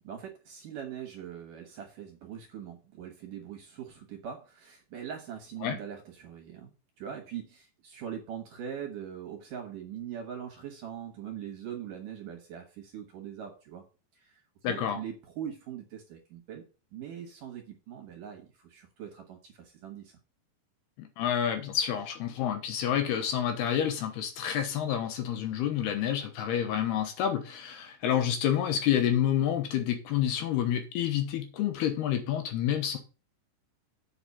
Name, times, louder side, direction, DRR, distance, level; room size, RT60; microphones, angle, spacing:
voice 1, 0.1-13.8 14.1-16.6 16.9-20.2, right 9 dB, 65° right, 2.3 m, -42 dB
voice 2, 14.6-15.0 21.0-33.0, left 10 dB, 75° left, 2.9 m, -29 dB
8.0 x 4.8 x 7.1 m
omnidirectional pair, 5.1 m